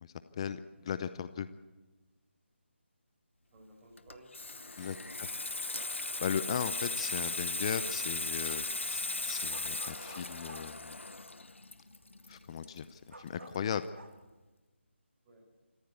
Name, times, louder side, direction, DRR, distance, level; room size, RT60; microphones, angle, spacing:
voice 1, 0.0-1.5 4.8-5.3 6.2-11.0 12.3-13.8, left 8 dB, 25° left, 13 dB, 0.7 m, -37 dB
voice 2, 3.5-5.3 15.2-15.5, right 1 dB, 20° right, -1 dB, 5.1 m, -57 dB
Water tap faucet / Sink (filling or washing), 4.0-13.3 13.6-13.8, left 2 dB, 75° left, 1.1 m, -37 dB
sound 1, 8.0-8.1 8.3-11.5 12.0-12.1 12.3-14.2, right 2 dB, 70° right, 3.1 m, -52 dB
28.0 x 15.0 x 8.2 m, 1.2 s
figure-of-eight pair, 155°, 7 cm